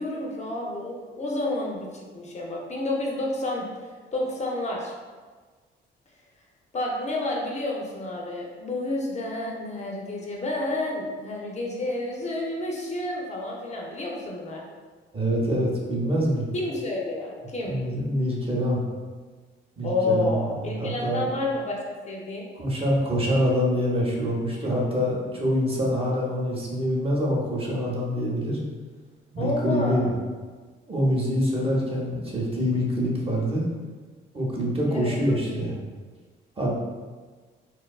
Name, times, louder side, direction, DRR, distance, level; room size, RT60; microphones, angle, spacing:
voice 1, 0.0-1.9 2.1-3.7 4.1-4.9 6.7-14.6 16.5-17.8 19.8-21.8 22.1-22.5 29.4-30.1 34.9-35.6, left 2 dB, 35° left, -2 dB, 0.5 m, -30 dB
voice 2, 15.1-16.5 17.7-18.8 19.8-20.3 20.7-21.2 22.6-28.6 29.3-30.1 30.9-33.7 34.3-35.7 36.6-36.7, equal, 30° right, -3 dB, 0.7 m, -25 dB
2.7 x 2.2 x 2.3 m, 1.4 s
cardioid pair, 90°, 20 cm